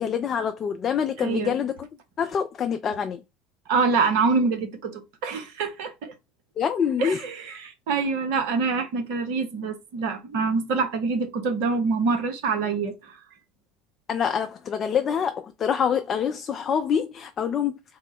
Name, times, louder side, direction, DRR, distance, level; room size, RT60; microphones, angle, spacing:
voice 1, 0.0-1.9 2.2-3.2 6.6-7.2 14.1-17.8, left 7 dB, 35° left, 0.4 m, -26 dB
voice 2, 1.2-1.6 3.7-6.1 7.0-13.2, right 4 dB, 60° right, 0.9 m, -25 dB
3.7 x 2.1 x 3.6 m
figure-of-eight pair, 70°, 0 cm